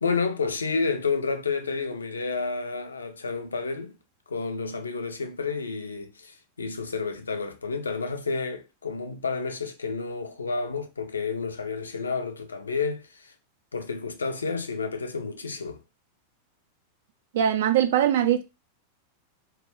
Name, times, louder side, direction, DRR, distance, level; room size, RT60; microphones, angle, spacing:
voice 1, 0.0-4.0 4.3-13.3 13.7-15.8, left 4 dB, 75° left, 0.4 m, -30 dB
voice 2, 17.3-18.4, right 10 dB, 55° right, 0.3 m, -21 dB
2.3 x 2.2 x 3.3 m
figure-of-eight pair, 90°, 0 cm